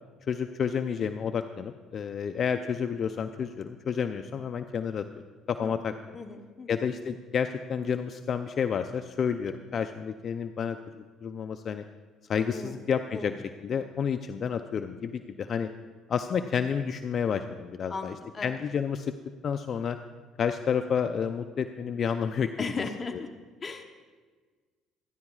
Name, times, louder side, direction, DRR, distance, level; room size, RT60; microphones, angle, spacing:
voice 1, 0.3-5.0 5.5-6.2 6.7-11.8 12.3-13.3 13.6-15.7 16.1-18.1 18.4-19.1 19.4-20.0 20.4-22.9 23.1-23.2, left 7 dB, 50° left, 9 dB, 0.5 m, -30 dB
voice 2, 6.1-6.9 12.5-12.8 13.1-13.3 17.9-18.6 22.6-23.3 23.6-23.8, left 4 dB, 35° left, 6 dB, 1.0 m, -37 dB
25.0 x 10.5 x 2.4 m, 1.5 s
supercardioid pair, 80°, 0 cm